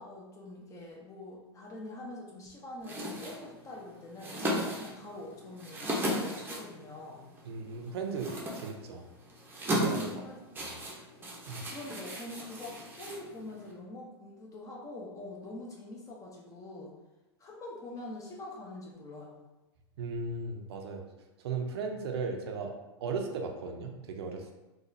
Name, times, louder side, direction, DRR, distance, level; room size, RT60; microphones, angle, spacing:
voice 1, 0.0-4.4 4.8-7.2 9.8-10.4 11.7-16.9 17.4-19.4, left 2 dB, 25° left, -2 dB, 0.9 m, -44 dB
sound 1, 2.8-13.7, equal, 15° right, 0.8 m, -37 dB
voice 2, 7.4-9.1 9.7-10.1 10.6-10.7 11.5-11.6 20.0-21.0 21.4-22.7 23.0-24.6, right 4 dB, 70° right, 4 dB, 0.6 m, -36 dB
4.0 x 2.4 x 2.7 m, 1.0 s
hypercardioid pair, 110°, 14 cm